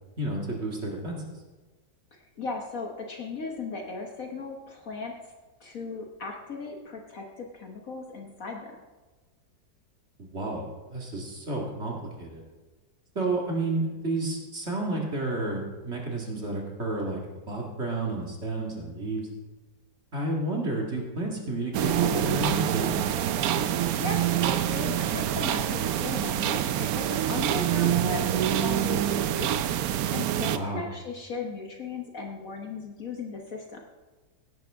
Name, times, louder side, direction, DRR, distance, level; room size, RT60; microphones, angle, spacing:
voice 1, 0.2-1.2 10.2-12.4 13.2-17.2 17.5-19.3 20.1-23.0 27.9-28.1 30.5-30.9, right 2 dB, 35° right, -1 dB, 2.1 m, -31 dB
voice 2, 2.1-5.1 5.6-8.7 24.0-29.5 30.1-33.8, left 4 dB, 50° left, 2 dB, 1.4 m, -37 dB
sound 1, 21.7-30.6, right 11 dB, 70° right, 0.8 m, -26 dB
17.0 x 10.5 x 3.5 m, 1.2 s
omnidirectional pair, 2.1 m